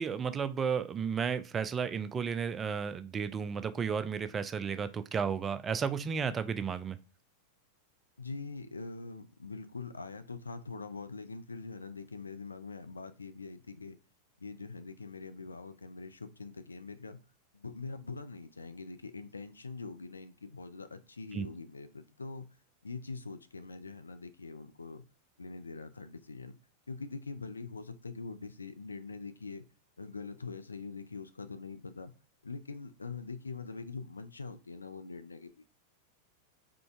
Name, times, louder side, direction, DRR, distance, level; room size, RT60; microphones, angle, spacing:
voice 1, 0.0-7.0 21.3-21.5, right 6 dB, 20° right, 0.3 m, -33 dB
voice 2, 8.2-14.0 14.4-17.2 17.5-22.5 22.8-25.0 25.4-26.6 26.9-29.7 30.0-32.1 32.4-35.7, left 4 dB, 75° left, 0.3 m, -43 dB
3.7 x 3.3 x 2.4 m
figure-of-eight pair, 90°, 0 cm